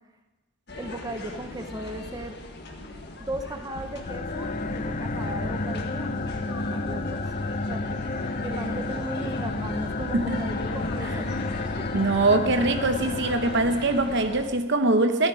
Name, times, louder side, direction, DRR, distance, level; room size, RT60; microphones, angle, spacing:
sound 1, 0.7-14.5, left 2 dB, 55° left, 1.6 m, -40 dB
voice 1, 0.8-2.4 3.2-11.3 11.8-11.9, right 1 dB, 20° right, 0.8 m, -37 dB
sound 2, 4.0-14.4, left 2 dB, 40° left, 0.5 m, -31 dB
voice 2, 11.9-15.3, right 2 dB, 60° right, 0.9 m, -23 dB
13.0 x 13.0 x 4.9 m
head